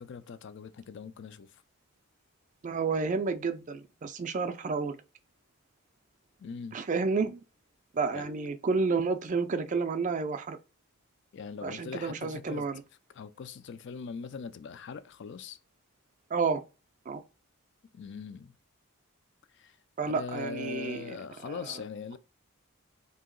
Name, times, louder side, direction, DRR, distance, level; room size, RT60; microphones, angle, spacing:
voice 1, 0.0-1.6 6.4-6.8 8.1-8.3 11.3-12.7 13.1-15.6 17.9-18.5 19.5-19.8 20.0-22.2, left 5 dB, 55° left, 0.3 m, -41 dB
voice 2, 2.6-5.0 6.7-7.4 7.9-10.6 11.6-12.8 16.3-16.6 17.1-17.2 20.0-21.1, right 4 dB, 35° right, 0.3 m, -30 dB
2.8 x 2.8 x 3.7 m
head